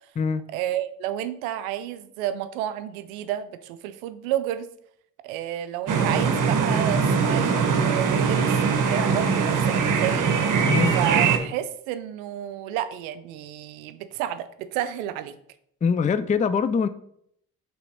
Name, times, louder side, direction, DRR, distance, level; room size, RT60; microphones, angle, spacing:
voice 1, 0.5-4.7 5.2-10.6 10.9-15.4, right 11 dB, 90° right, 0.5 m, -31 dB
sound 1, 5.9-11.4, right 5 dB, 50° right, 1.0 m, -22 dB
voice 2, 10.7-11.0 15.8-16.9, left 6 dB, 20° left, 0.4 m, -23 dB
5.7 x 3.4 x 5.3 m
hypercardioid pair, 45°, 40 cm